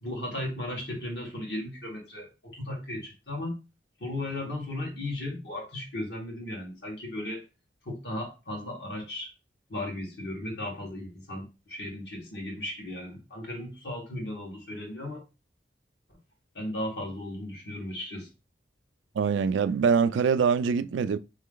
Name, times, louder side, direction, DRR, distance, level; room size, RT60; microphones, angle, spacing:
voice 1, 0.0-3.6 4.0-7.4 7.8-9.3 9.7-15.2 16.6-18.3, left 1 dB, 65° left, 1.7 m, -36 dB
voice 2, 19.1-21.2, right 6 dB, 90° right, 0.3 m, -24 dB
3.8 x 3.2 x 3.8 m
head